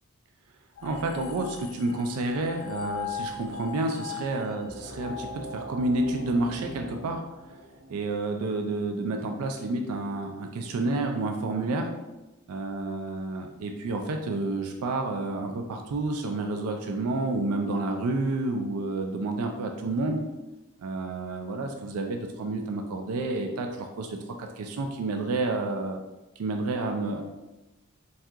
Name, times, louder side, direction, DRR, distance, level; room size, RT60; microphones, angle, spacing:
sound 1, 0.8-6.2, left 5 dB, 80° left, 0.5 m, -39 dB
voice 1, 0.8-7.2 7.9-11.9 12.5-20.2 20.8-26.0 26.4-27.2, right 2 dB, 90° right, 4 dB, 0.4 m, -30 dB
sound 2, 4.6-9.7, equal, 35° right, 0.7 m, -42 dB
2.8 x 2.4 x 3.4 m, 1.0 s
head